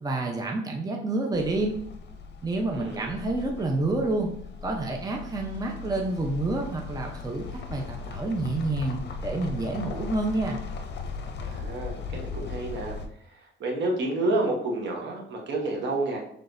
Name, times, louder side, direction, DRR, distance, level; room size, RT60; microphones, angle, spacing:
voice 1, 0.0-1.8 2.4-4.3 4.6-10.6, right 2 dB, 20° right, 1 dB, 0.7 m, -28 dB
sound 1, 1.3-13.1, left 4 dB, 60° left, 0.6 m, -38 dB
voice 2, 2.7-3.1 11.5-13.0 13.6-16.2, right 2 dB, 65° right, 1 dB, 1.2 m, -29 dB
6.0 x 3.3 x 2.6 m, 0.66 s
cardioid pair, 90°, 20 cm